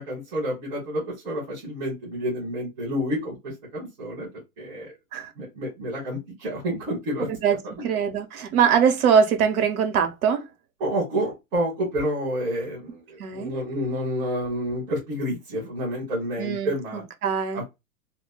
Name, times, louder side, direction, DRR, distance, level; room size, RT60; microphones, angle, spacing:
voice 1, 0.0-4.3 4.6-4.9 5.4-7.3 10.8-17.0 17.5-17.6, equal, 60° right, 1.5 m, -29 dB
voice 2, 7.8-10.4 13.2-13.5 16.4-17.6, right 7 dB, 85° right, 0.9 m, -22 dB
3.1 x 2.1 x 2.2 m
supercardioid pair, 165°, 43 cm